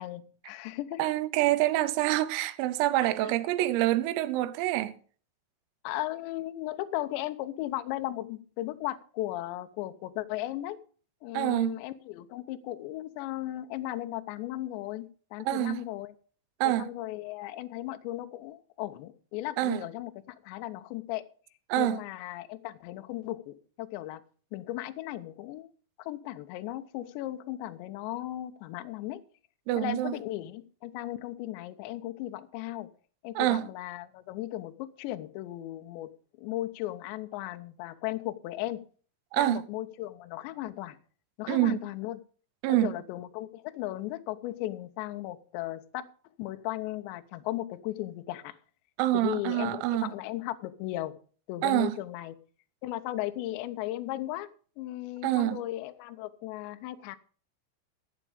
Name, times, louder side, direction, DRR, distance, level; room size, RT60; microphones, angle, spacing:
voice 1, 0.0-1.0 3.0-3.1 5.8-10.8 11.2-16.1 16.8-21.3 21.8-24.2 24.5-25.7 26.0-29.2 29.8-32.9 33.2-38.8 39.4-41.0 41.4-42.2 42.7-46.1 46.4-48.6 49.1-51.2 51.5-52.4 52.8-54.5 54.8-57.2, left 15 dB, 75° left, 2.7 m, -36 dB
voice 2, 1.0-5.0 11.4-11.8 15.5-15.8 16.6-16.9 19.6-19.8 21.7-22.0 29.7-30.1 33.4-33.7 39.3-39.6 41.5-41.8 42.6-43.0 49.0-50.1 51.6-52.0 55.2-55.6, right 15 dB, 90° right, 3.5 m, -26 dB
14.5 x 8.3 x 5.1 m
omnidirectional pair, 5.9 m